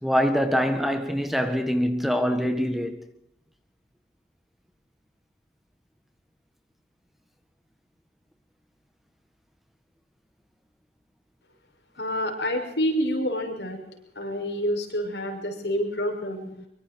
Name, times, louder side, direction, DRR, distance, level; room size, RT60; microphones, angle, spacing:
voice 1, 0.0-3.0 16.6-16.7, equal, ahead, 1.6 m, -24 dB
voice 2, 12.0-13.8 14.1-16.4, equal, 80° left, 6.4 m, -28 dB
24.0 x 24.0 x 4.6 m
head